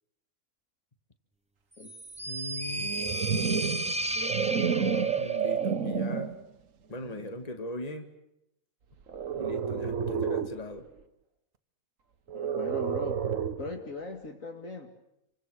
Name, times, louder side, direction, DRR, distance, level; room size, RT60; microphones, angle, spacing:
sound 1, 1.8-5.5, right 1 dB, 10° right, 0.4 m, -34 dB
voice 1, 2.3-2.9 5.2-6.3 6.9-8.1 9.4-10.8, left 2 dB, 25° left, 7 dB, 1.9 m, -39 dB
sound 2, 2.7-6.4 7.0-7.3 9.1-10.6 12.3-13.7, right 7 dB, 65° right, 1.6 m, -30 dB
voice 2, 12.3-13.2 13.6-14.9, left 3 dB, 65° left, 5 dB, 2.7 m, -39 dB
28.0 x 24.5 x 6.3 m, 0.82 s
omnidirectional pair, 1.5 m